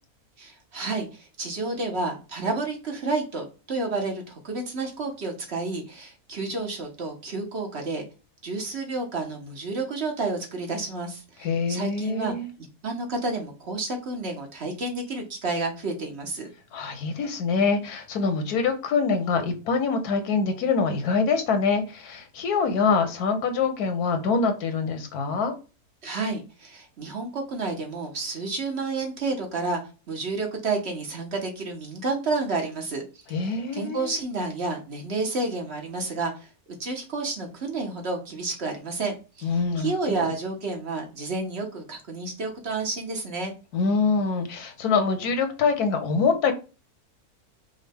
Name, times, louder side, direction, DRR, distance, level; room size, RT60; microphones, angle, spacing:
voice 1, 0.4-8.0 8.4-16.5 26.0-29.8 30.1-43.5, right 3 dB, 50° right, 2 dB, 1.2 m, -30 dB
voice 2, 11.4-12.5 16.7-25.5 33.3-34.2 39.4-40.3 43.7-46.5, left 4 dB, 85° left, 7 dB, 1.4 m, -25 dB
5.3 x 2.3 x 3.4 m, 0.32 s
omnidirectional pair, 1.6 m